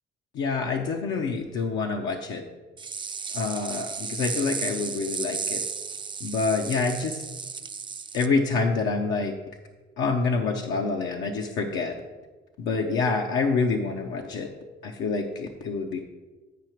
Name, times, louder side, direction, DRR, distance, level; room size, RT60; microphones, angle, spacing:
voice 1, 0.3-2.4 3.3-5.6 6.2-7.2 8.1-9.3 10.0-11.9 12.6-14.5 14.8-16.0, left 4 dB, 85° left, 2 dB, 0.6 m, -27 dB
sound 1, 2.8-8.3, right 5 dB, 25° right, 0.4 m, -34 dB
9.4 x 4.8 x 4.5 m, 1.3 s
cardioid pair, 90°, 20 cm